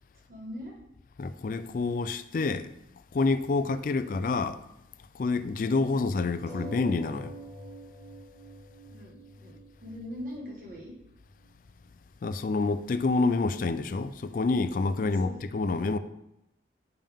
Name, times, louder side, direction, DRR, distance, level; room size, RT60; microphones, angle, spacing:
voice 1, 0.3-0.7 8.9-9.6 9.8-10.9 15.0-15.4, equal, 45° right, 1.6 m, -41 dB
voice 2, 1.2-2.7 3.1-4.6 5.1-7.3 12.2-16.0, left 3 dB, 45° left, 0.3 m, -28 dB
sound 1, 6.5-11.5 12.2-12.3 12.6-12.7, right 1 dB, 75° right, 2.3 m, -46 dB
6.9 x 5.4 x 3.5 m
head